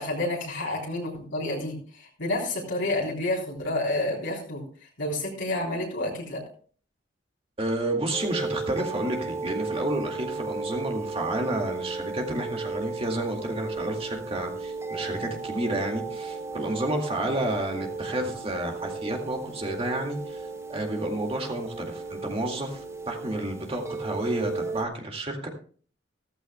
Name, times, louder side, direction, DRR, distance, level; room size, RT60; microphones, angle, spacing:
voice 1, 0.0-4.7 5.0-6.4, left 1 dB, 65° left, -3 dB, 3.5 m, -29 dB
voice 2, 7.6-25.5, right 1 dB, 30° right, 2 dB, 2.1 m, -30 dB
sound 1, 8.1-24.8, right 3 dB, 15° right, 0.7 m, -35 dB
15.5 x 14.5 x 2.2 m, 0.44 s
head